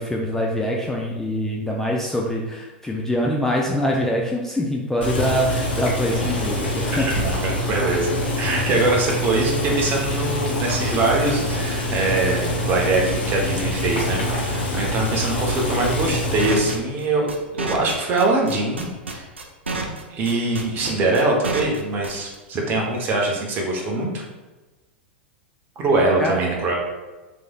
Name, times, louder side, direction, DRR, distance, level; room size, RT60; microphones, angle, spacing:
voice 1, 0.0-7.1 7.6-7.7 26.2-26.4, equal, 5° left, -2 dB, 0.3 m, -24 dB
Boiling, 5.0-16.8, left 1 dB, 70° left, 0.8 m, -25 dB
voice 2, 6.9-17.3 17.5-19.2 20.1-24.2 25.8-26.8, right 2 dB, 35° right, 0 dB, 0.7 m, -23 dB
sound 1, 16.4-22.3, right 3 dB, 90° right, 0.4 m, -29 dB
3.1 x 2.6 x 2.2 m, 1.2 s
figure-of-eight pair, 95°, 6 cm